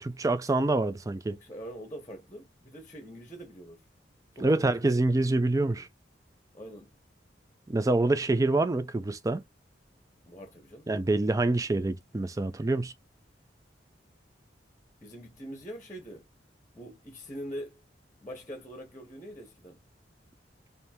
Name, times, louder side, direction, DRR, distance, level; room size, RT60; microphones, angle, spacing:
voice 1, 0.0-1.4 4.4-5.9 7.7-9.4 10.9-12.9, right 2 dB, 20° right, 0.4 m, -26 dB
voice 2, 1.3-3.8 4.3-5.2 5.6-5.9 6.5-7.0 8.3-8.4 10.3-10.9 15.0-16.3 16.7-17.8 18.2-19.8, equal, 15° left, 1.0 m, -44 dB
3.4 x 2.7 x 4.2 m
head